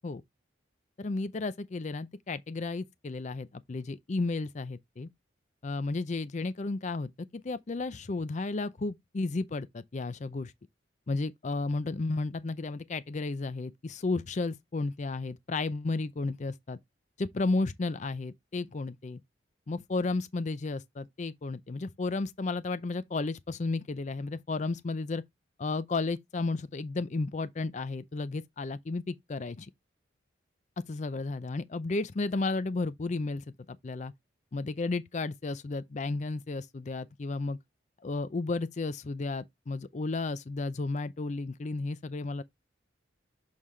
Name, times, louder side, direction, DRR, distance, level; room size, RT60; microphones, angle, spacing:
voice 1, 1.0-5.1 5.6-10.5 11.1-16.8 17.2-19.2 19.7-25.2 25.6-29.7 30.9-34.1 34.5-37.6 38.0-42.4, left 3 dB, 40° left, 0.4 m, -33 dB
6.4 x 5.5 x 3.1 m
head